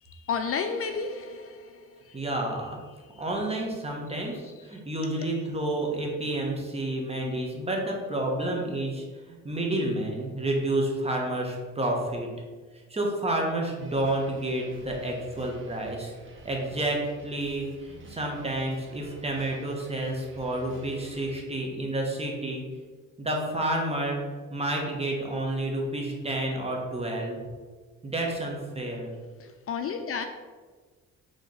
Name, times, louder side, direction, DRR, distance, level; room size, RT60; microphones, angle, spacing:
voice 1, 0.0-2.2 3.1-3.2 4.3-5.3 29.4-30.3, left 5 dB, 50° left, 0.5 m, -34 dB
voice 2, 2.1-2.8 3.2-12.3 12.9-16.1 16.4-22.6 23.2-24.2 24.5-27.4 28.0-29.1, right 1 dB, 20° right, 1.5 m, -30 dB
sound 1, 13.8-21.3, right 3 dB, 40° right, 1.0 m, -50 dB
4.9 x 3.6 x 5.4 m
cardioid pair, 90°, 30 cm